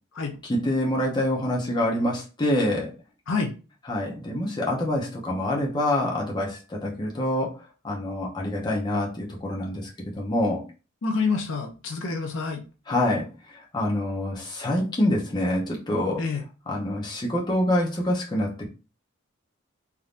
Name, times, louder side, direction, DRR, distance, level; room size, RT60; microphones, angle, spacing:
voice 1, 0.4-2.9 3.8-7.6 7.8-9.9 10.2-10.6 12.9-13.3 13.5-16.2 16.7-18.7, left 1 dB, 20° left, -3 dB, 0.7 m, -26 dB
voice 2, 11.0-12.6 16.2-16.4, left 4 dB, 60° left, 3 dB, 0.6 m, -27 dB
3.4 x 2.7 x 2.4 m, 0.33 s
head